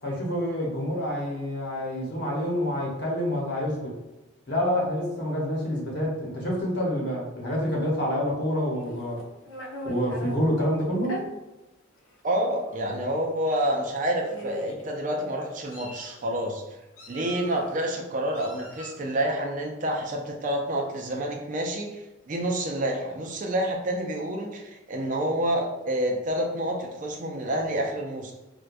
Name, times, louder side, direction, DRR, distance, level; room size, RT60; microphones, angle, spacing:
voice 1, 0.0-3.9 4.5-9.2 9.8-11.2, equal, 50° left, -3 dB, 1.0 m, -27 dB
Meow, 8.7-10.4 11.0-11.2 12.1-12.2 12.6-12.8 13.8-13.9 14.3-14.8 15.4-16.2 17.0-17.7 18.3-19.0, equal, 80° left, 0.6 m, -40 dB
voice 2, 12.2-16.6 17.1-28.3, right 1 dB, 40° right, 1 dB, 0.4 m, -28 dB
4.5 x 2.2 x 2.5 m, 1.0 s
head